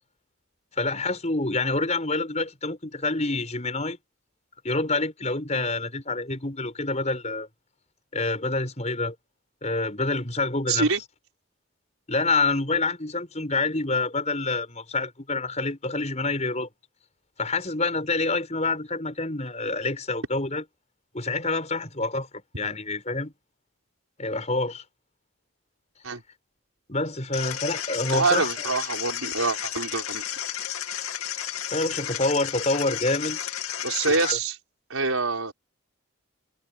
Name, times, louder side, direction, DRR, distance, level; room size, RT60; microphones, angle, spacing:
voice 1, 0.8-4.0 4.6-7.5 8.1-9.1 9.6-10.9 12.1-16.7 17.4-20.6 21.1-22.3 22.6-23.3 24.2-24.8 26.9-28.5 31.7-33.4 34.0-34.4, left 3 dB, 30° left, 6.0 m, -27 dB
voice 2, 10.7-11.0 26.0-26.2 28.1-30.2 33.8-34.6 34.9-35.5, right 4 dB, 80° right, 5.0 m, -25 dB
sound 1, 27.3-34.3, left 10 dB, 80° left, 2.7 m, -32 dB
head